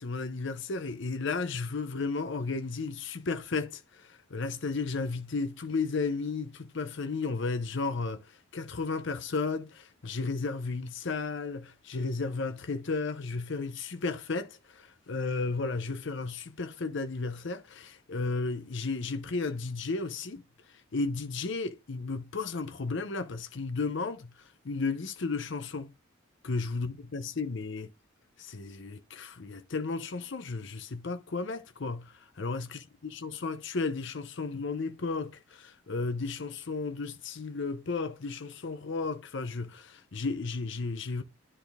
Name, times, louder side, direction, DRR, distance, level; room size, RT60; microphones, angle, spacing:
voice 1, 0.0-20.4 20.7-25.9 26.4-27.9 28.4-41.2, left 4 dB, 65° left, 0.7 m, -34 dB
10.0 x 4.1 x 3.5 m
head